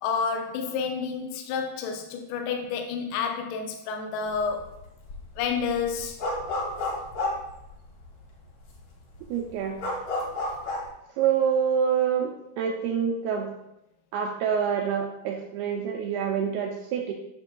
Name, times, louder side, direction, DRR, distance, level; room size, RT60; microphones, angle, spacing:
voice 1, 0.0-4.7 5.4-6.2, left 6 dB, 75° left, 2 dB, 2.5 m, -29 dB
sound 1, 4.3-4.7 5.0-8.2 8.7-8.8 9.0-10.9, left 2 dB, 50° left, 2.2 m, -31 dB
voice 2, 9.3-9.8 11.2-13.5 14.1-17.1, right 7 dB, 85° right, 1 dB, 2.3 m, -26 dB
10.5 x 6.9 x 2.3 m, 0.86 s
omnidirectional pair, 5.0 m